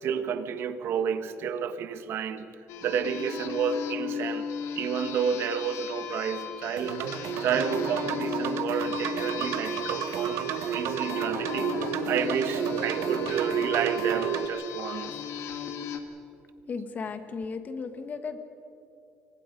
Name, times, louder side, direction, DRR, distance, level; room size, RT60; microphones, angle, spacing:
voice 1, 0.0-2.5 2.8-15.2, right 7 dB, 65° right, 10 dB, 1.3 m, -31 dB
sound 1, 2.7-16.0, left 7 dB, 85° left, 2.2 m, -36 dB
sound 2, 6.8-14.5, right 10 dB, 85° right, 1.1 m, -31 dB
voice 2, 16.7-18.4, left 5 dB, 40° left, 8 dB, 1.7 m, -35 dB
29.0 x 23.5 x 5.4 m, 2.7 s
cardioid pair, 145°, 5 cm